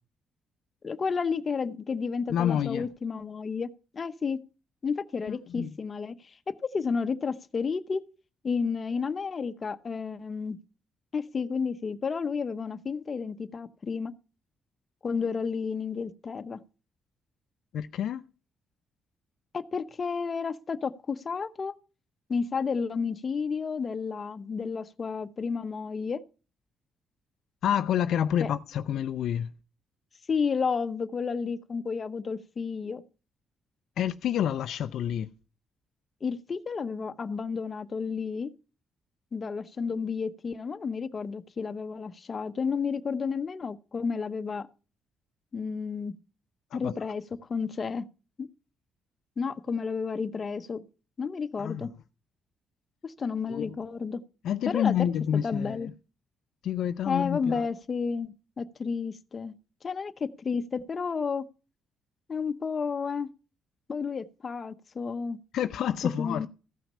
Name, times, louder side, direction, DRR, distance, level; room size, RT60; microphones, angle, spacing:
voice 1, 0.8-4.4 4.8-8.0 8.4-10.6 11.1-14.1 15.0-16.6 19.5-21.7 22.3-26.2 28.4-28.5 30.3-33.0 36.2-38.5 39.3-44.7 45.5-46.1 46.7-47.2 47.5-48.1 48.4-48.5 49.4-50.9 51.2-51.9 53.0-54.2 54.7-55.1 55.4-55.9 57.1-59.5 59.8-61.5 62.3-63.3 63.9-65.4 66.0-66.5, left 5 dB, 40° left, 0.8 m, -31 dB
voice 2, 2.3-2.9 5.3-5.7 17.7-18.2 27.6-29.5 34.0-35.3 46.7-46.9 51.6-51.9 53.5-53.8 54.4-55.9 56.6-57.6 65.5-66.5, left 9 dB, 75° left, 0.4 m, -28 dB
14.5 x 5.9 x 5.5 m
cardioid pair, 90°, 0 cm